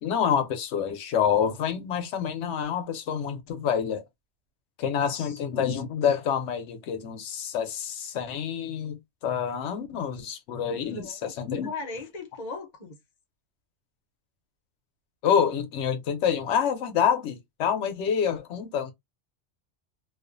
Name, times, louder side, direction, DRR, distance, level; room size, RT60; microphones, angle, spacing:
voice 1, 0.0-4.0 4.8-11.7 15.2-18.9, left 8 dB, 85° left, 0.9 m, -27 dB
voice 2, 4.9-5.4 10.8-11.3 11.6-13.0, left 3 dB, 40° left, 0.8 m, -38 dB
2.4 x 2.3 x 2.4 m
omnidirectional pair, 1.2 m